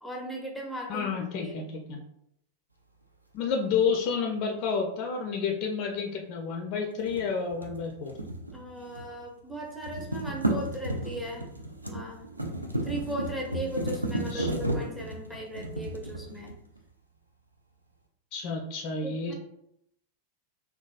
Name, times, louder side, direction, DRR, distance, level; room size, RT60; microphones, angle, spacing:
voice 1, 0.0-1.1 1.4-1.5 8.5-11.5 11.9-12.2 12.8-16.6 19.0-19.3, equal, ahead, -2 dB, 0.6 m, -37 dB
voice 2, 0.9-2.0 3.3-8.2 14.3-14.5 18.3-19.3, left 5 dB, 40° left, 3 dB, 0.4 m, -30 dB
sound 1, 7.0-9.2 9.5-16.8, right 1 dB, 85° right, 0.4 m, -34 dB
3.9 x 2.2 x 2.3 m, 0.77 s
figure-of-eight pair, 90°, 0 cm